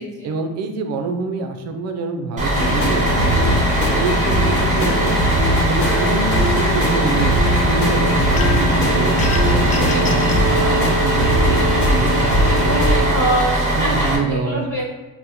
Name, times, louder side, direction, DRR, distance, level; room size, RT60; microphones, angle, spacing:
voice 1, 0.2-3.6 4.0-5.2 5.5-7.3 7.6-9.2 9.5-13.3 13.8-14.6, right 4 dB, 55° right, 6 dB, 0.5 m, -26 dB
Bus, 2.4-14.2, right 1 dB, 25° right, 0.9 m, -20 dB
sound 1, 2.5-13.0, left 1 dB, 65° left, 1.0 m, -20 dB
sound 2, 8.4-8.8 9.2-10.5, left 4 dB, 25° left, 0.4 m, -29 dB
voice 2, 12.6-14.8, right 1 dB, 10° left, -8 dB, 1.1 m, -24 dB
2.8 x 2.1 x 3.6 m, 1.1 s
cardioid pair, 100°, 32 cm